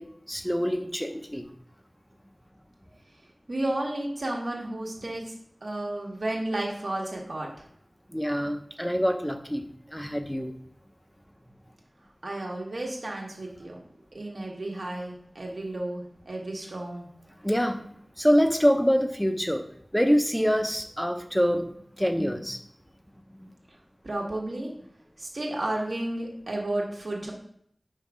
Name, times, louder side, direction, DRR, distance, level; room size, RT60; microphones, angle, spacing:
voice 1, 0.0-1.5 8.1-9.6 9.9-10.5 17.4-17.9 18.2-19.6 19.9-22.6 23.4-23.5, equal, 5° left, 7 dB, 0.7 m, -25 dB
voice 2, 3.5-5.3 5.6-7.5 12.2-13.8 14.1-17.1 24.0-24.7 25.2-27.3, right 1 dB, 70° right, -1 dB, 1.6 m, -32 dB
5.4 x 3.6 x 5.1 m, 0.67 s
wide cardioid pair, 50°, 0 cm